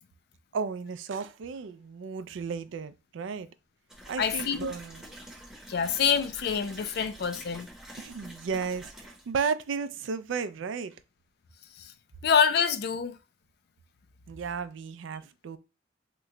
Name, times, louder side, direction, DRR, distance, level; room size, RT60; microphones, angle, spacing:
voice 1, 0.5-3.5 4.1-5.0 8.0-11.0 14.3-15.6, right 5 dB, 80° right, 0.4 m, -34 dB
sound 1, 3.9-9.3, equal, 5° right, 0.7 m, -46 dB
voice 2, 4.2-4.7 5.7-7.7 11.8-11.9 12.2-13.2, left 7 dB, 55° left, 0.4 m, -26 dB
2.9 x 2.2 x 3.7 m
head